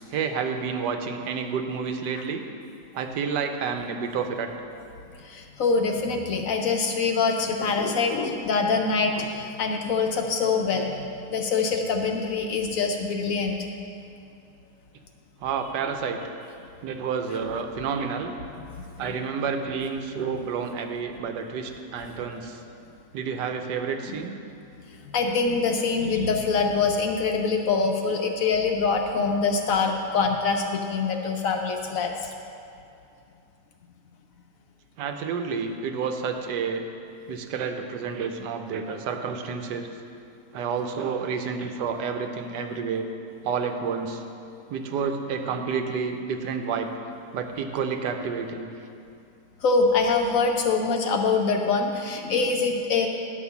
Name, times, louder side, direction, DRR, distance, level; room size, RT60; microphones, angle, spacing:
voice 1, 0.1-2.4 2.9-4.5 15.4-16.3 16.8-18.4 19.0-22.6 23.1-24.4 35.0-36.8 37.3-39.9 40.5-43.1 43.4-44.2 44.7-46.9 47.3-48.7, right 6 dB, 85° right, 5 dB, 1.3 m, -29 dB
voice 2, 5.2-11.0 11.3-13.7 18.8-19.2 25.1-32.3 49.6-53.1, left 4 dB, 65° left, 3 dB, 0.9 m, -24 dB
10.0 x 5.0 x 7.0 m, 2.6 s
omnidirectional pair, 1.8 m